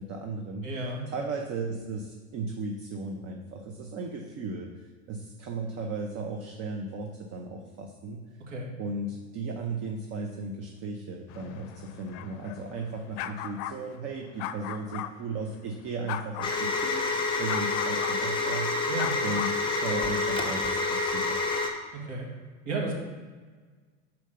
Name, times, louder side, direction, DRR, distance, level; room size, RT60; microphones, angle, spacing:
voice 1, 0.0-0.7 1.1-8.2 8.8-18.9 19.2-21.5, right 3 dB, 40° right, 2 dB, 0.8 m, -36 dB
voice 2, 0.6-1.0 8.5-8.7 18.9-19.2 21.9-22.3 22.7-22.9, right 3 dB, 75° right, -2 dB, 2.1 m, -33 dB
sound 1, 11.3-15.1 16.1-16.6 17.5-18.2 18.9-19.6, left 11 dB, 55° left, 0.5 m, -38 dB
sound 2, 16.4-21.7, left 3 dB, 15° left, 1.0 m, -28 dB
5.4 x 4.5 x 5.1 m, 1.4 s
hypercardioid pair, 100°, 37 cm